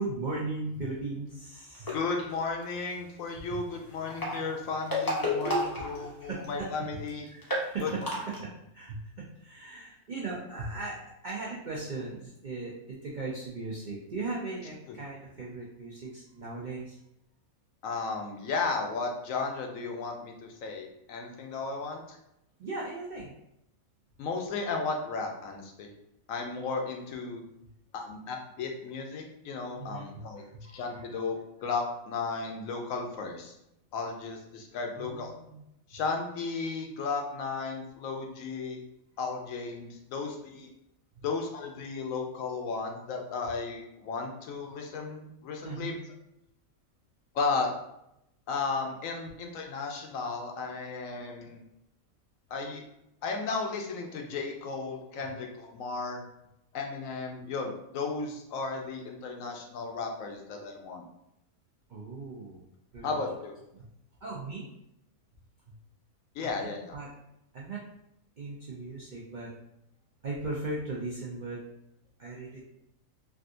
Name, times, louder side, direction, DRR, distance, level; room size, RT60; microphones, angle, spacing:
voice 1, 0.0-2.0 5.8-6.7 7.3-8.0 8.4-8.5 8.7-17.0 22.6-23.3 29.8-31.0 35.0-35.6 41.2-41.3 45.6-46.0 61.9-62.6 62.9-63.2 63.7-63.9 64.2-64.7 66.4-67.1 67.5-67.8 68.4-69.5 70.2-71.6 72.2-72.6, right 3 dB, 75° right, -4 dB, 0.4 m, -38 dB
sound 1, 1.7-2.2 3.9-6.5 6.8-6.9 7.1-7.2 7.4-8.4, left 1 dB, 30° left, 0.3 m, -31 dB
voice 2, 1.9-7.3 7.8-7.9 17.8-22.2 24.2-25.9 26.3-27.4 27.9-30.4 30.7-33.5 33.9-35.3 35.9-38.8 39.2-40.7 41.2-46.0 47.3-47.7 48.5-51.6 52.5-52.8 53.2-56.2 56.7-61.0 63.0-63.5 66.3-66.9, left 4 dB, 70° left, 2 dB, 0.9 m, -34 dB
3.4 x 2.5 x 2.5 m, 0.81 s
omnidirectional pair, 1.5 m